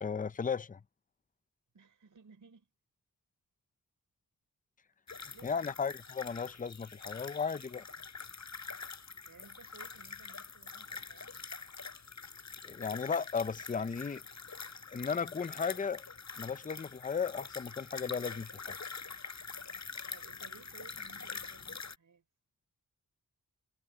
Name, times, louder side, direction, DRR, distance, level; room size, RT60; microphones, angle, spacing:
voice 1, 0.0-0.8 5.4-7.8 12.6-14.2 14.9-16.0 16.4-18.8, left 6 dB, 25° left, 0.6 m, -35 dB
voice 2, 1.7-2.7 5.1-5.6 9.3-11.3 20.1-22.2, right 5 dB, 65° right, 4.8 m, -58 dB
sound 1, 5.1-21.9, left 5 dB, 55° left, 4.8 m, -45 dB
wide cardioid pair, 85°, 34 cm